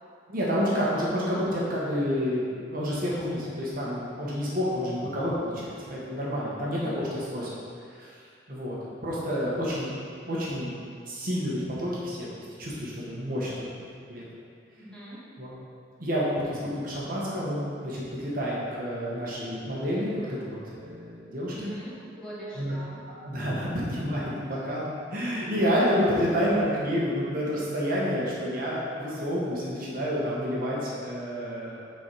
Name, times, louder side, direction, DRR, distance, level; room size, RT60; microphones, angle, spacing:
voice 1, 0.3-7.6 7.9-8.2 8.5-8.8 9.0-9.9 10.3-10.7 11.0-12.3 12.6-13.5 14.1-14.3 15.4-15.5 16.0-21.7 22.5-22.7 23.2-31.9, equal, 45° right, -6 dB, 1.4 m, -29 dB
voice 2, 6.7-7.0 14.7-15.2 21.5-23.0 24.5-24.6, right 1 dB, 5° left, -10 dB, 1.6 m, -43 dB
7.2 x 4.7 x 4.8 m, 2.3 s
head